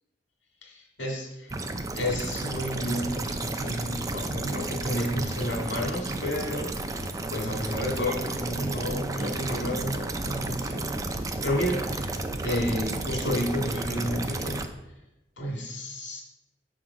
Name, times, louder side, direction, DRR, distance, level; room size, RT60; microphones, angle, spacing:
voice 1, 0.6-1.6 1.9-14.6 15.4-16.2, equal, 90° left, -1 dB, 2.0 m, -31 dB
sound 1, 1.5-14.7, right 2 dB, 20° right, 0.4 m, -32 dB
7.7 x 3.8 x 5.7 m, 0.98 s
head